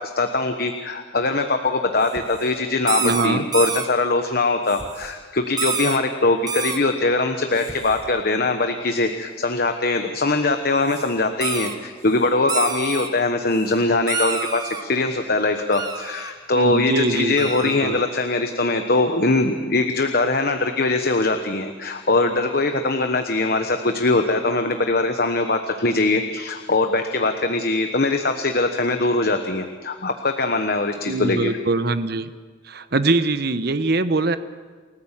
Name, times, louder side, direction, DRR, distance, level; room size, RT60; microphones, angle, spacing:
voice 1, 0.0-31.5, left 2 dB, 55° left, 6 dB, 1.1 m, -22 dB
sound 1, 2.0-2.4 2.9-3.9 4.7-5.1 5.6-6.0 6.5-6.8 7.6-8.1 10.9-11.1 11.4-11.8 12.5-13.1 13.5-13.7 14.1-14.8 15.7-16.3 17.4-17.8, right 5 dB, 20° right, 1.2 m, -28 dB
voice 2, 3.0-3.4 16.5-18.0 31.1-32.3 32.7-34.4, right 2 dB, 55° right, 11 dB, 1.0 m, -23 dB
29.0 x 14.0 x 7.4 m, 1.5 s
head